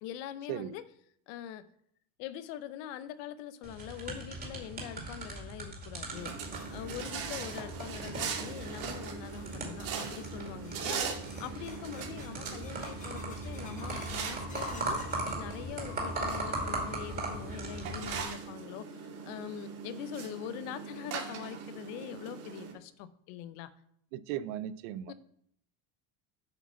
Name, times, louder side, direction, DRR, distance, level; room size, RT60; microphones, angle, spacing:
voice 1, 0.0-0.9 1.3-1.7 2.2-6.4 6.7-23.7 25.0-25.1, left 11 dB, 70° left, 14 dB, 0.9 m, -43 dB
sound 1, 3.6-18.2, right 2 dB, 20° right, 2.3 m, -39 dB
sound 2, 6.1-22.7, right 6 dB, 40° right, 2.5 m, -41 dB
sound 3, 6.5-16.3 16.5-17.2 17.5-17.6 18.4-18.5 20.1-20.2 20.7-20.8 21.2-21.3 21.8-21.9 22.4-22.8, left 2 dB, 15° left, 1.3 m, -55 dB
voice 2, 24.1-25.1, right 11 dB, 80° right, 15 dB, 0.7 m, -37 dB
7.8 x 5.1 x 6.8 m, 0.69 s
cardioid pair, 170°, 47 cm